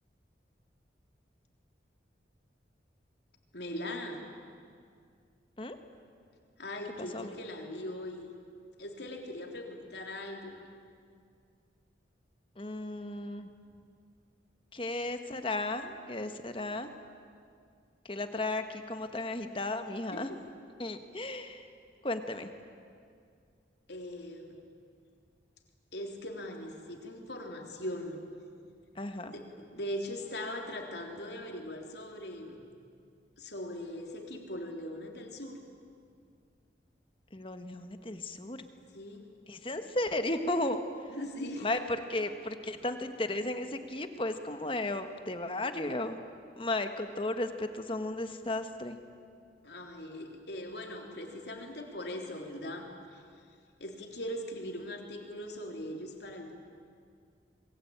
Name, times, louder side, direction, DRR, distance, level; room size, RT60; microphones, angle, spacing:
voice 1, 3.5-4.2 6.6-8.3 8.8-10.6 20.1-20.4 23.9-24.6 25.9-28.2 29.2-32.6 33.4-35.6 38.9-39.3 41.1-41.8 49.6-53.2 53.8-56.5, left 1 dB, 65° left, 2 dB, 3.4 m, -40 dB
voice 2, 7.0-7.3 12.6-13.5 14.7-16.9 18.0-20.3 20.8-21.7 22.0-22.5 28.9-29.3 37.3-38.6 39.5-40.8 41.6-46.2 46.6-49.0, left 2 dB, 30° left, 8 dB, 1.4 m, -34 dB
27.0 x 22.5 x 8.8 m, 2.3 s
head